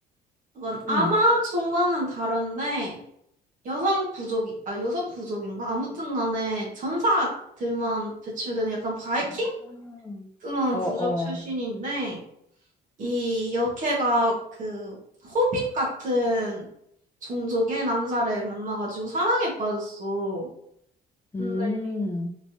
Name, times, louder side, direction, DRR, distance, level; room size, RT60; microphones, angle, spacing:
voice 1, 0.5-3.0 3.6-7.3 7.6-9.5 10.4-12.2 13.0-15.0 15.2-16.7 17.2-20.5 21.4-21.7, equal, 50° right, -3 dB, 1.2 m, -26 dB
voice 2, 9.7-10.3 10.7-11.4 21.3-22.3, left 2 dB, 15° left, 3 dB, 0.6 m, -29 dB
3.4 x 3.0 x 2.6 m, 0.70 s
cardioid pair, 110°, 17 cm